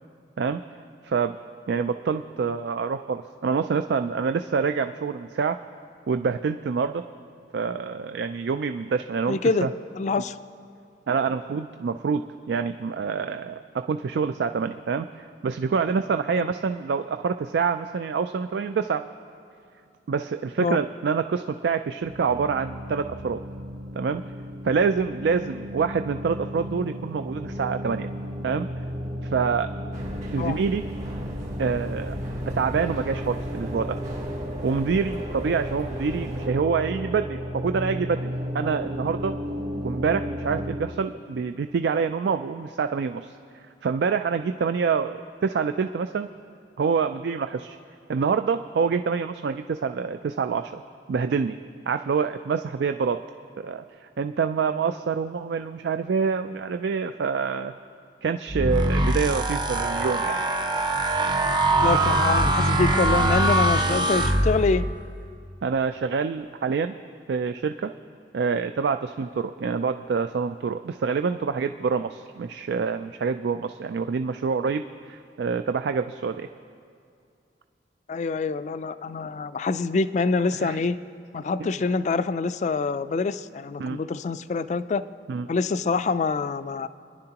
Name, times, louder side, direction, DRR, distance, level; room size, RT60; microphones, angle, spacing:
voice 1, 1.0-1.4 1.7-5.6 6.1-7.0 7.5-9.7 10.2-10.3 11.1-19.0 20.1-23.4 23.9-24.2 24.6-28.1 28.4-28.7 29.2-29.7 30.3-30.8 31.6-32.2 32.5-34.0 34.6-39.3 39.8-43.3 43.8-46.3 46.8-47.8 48.1-50.8 51.1-51.6 51.9-53.2 53.6-53.8 54.2-57.7 58.2-60.4 65.6-66.9 67.3-67.9 68.3-76.5 80.6-80.8 83.8-84.0 85.3-85.5, right 5 dB, 75° right, 9 dB, 0.4 m, -26 dB
voice 2, 9.3-9.7 10.0-10.4 16.4-16.5 20.6-20.8 30.4-30.6 61.8-64.9 78.1-81.0 81.3-85.0 85.5-86.9, left 4 dB, 40° left, 13 dB, 0.3 m, -25 dB
sound 1, 22.0-40.8, equal, 90° right, 4.1 m, -34 dB
sound 2, 29.9-36.5, equal, 45° right, 1.8 m, -38 dB
sound 3, 58.5-65.0, right 1 dB, 25° right, 0.7 m, -22 dB
27.5 x 10.5 x 2.9 m, 2.4 s
head